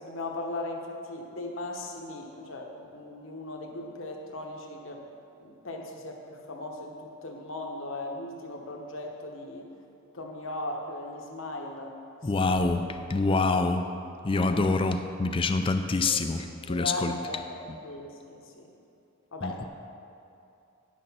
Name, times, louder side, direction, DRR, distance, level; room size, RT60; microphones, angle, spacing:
voice 1, 0.0-5.1 5.4-9.7 10.1-12.0 12.2-12.7 13.3-13.6 14.3-14.8 16.7-17.6 17.8-18.7 19.3-19.6, left 2 dB, 60° left, 1 dB, 1.1 m, -38 dB
voice 2, 12.2-12.8 13.1-13.8 14.2-17.1 19.4-19.6, left 3 dB, 25° left, 7 dB, 0.4 m, -26 dB
10.0 x 6.6 x 5.6 m, 2.6 s
head